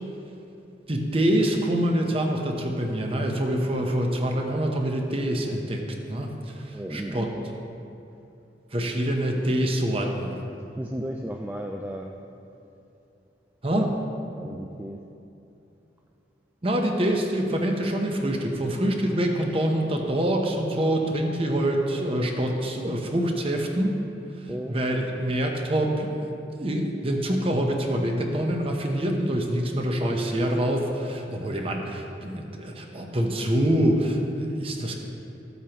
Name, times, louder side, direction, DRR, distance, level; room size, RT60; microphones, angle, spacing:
voice 1, 0.9-5.8 6.1-7.3 8.7-10.4 13.6-13.9 16.6-24.0 24.7-26.2 26.5-34.9, right 1 dB, 30° right, 2 dB, 0.9 m, -25 dB
voice 2, 6.7-7.3 10.0-10.2 10.4-12.2 13.7-13.9 14.3-15.0 24.5-24.8, right 1 dB, 10° right, 1 dB, 0.3 m, -35 dB
13.5 x 8.2 x 3.0 m, 2.8 s
head